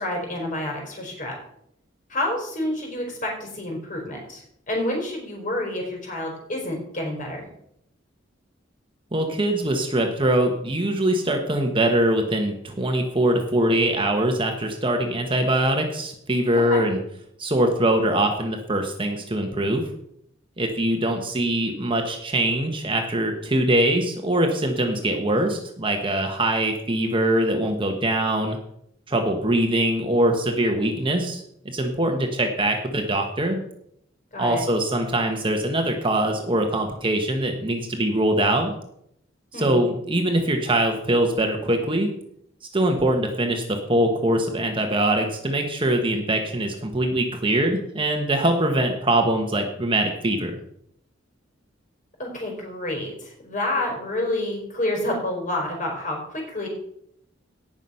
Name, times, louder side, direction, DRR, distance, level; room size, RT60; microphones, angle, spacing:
voice 1, 0.0-1.4 2.1-7.5 16.5-16.8 34.3-34.6 39.5-39.8 52.2-56.7, left 1 dB, 45° left, 0 dB, 4.7 m, -29 dB
voice 2, 9.1-17.0 17.4-19.8 20.6-28.6 29.1-33.6 34.4-38.7 39.5-42.1 42.7-50.5, right 1 dB, 25° right, 4 dB, 1.3 m, -23 dB
17.5 x 6.0 x 5.6 m, 0.73 s
head